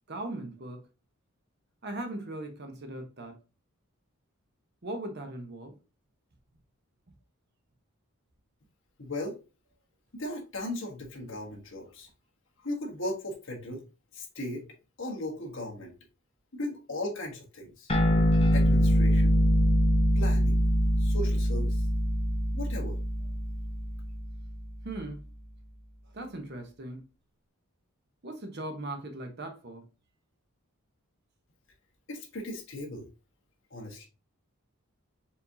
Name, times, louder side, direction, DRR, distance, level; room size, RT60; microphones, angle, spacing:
voice 1, 0.1-0.9 1.8-3.4 4.8-5.8 24.8-25.2 26.1-27.0 28.2-29.8, right 2 dB, 50° right, 0.9 m, -39 dB
voice 2, 9.0-9.4 10.1-12.1 12.6-13.8 14.1-14.6 15.0-15.9 16.5-17.9 18.5-19.4 20.1-20.6 21.0-21.8 22.5-23.0 32.1-33.1 33.7-34.1, left 1 dB, 55° left, 1.3 m, -37 dB
sound 1, 17.9-24.7, equal, 25° left, 0.8 m, -24 dB
4.5 x 3.5 x 2.7 m
head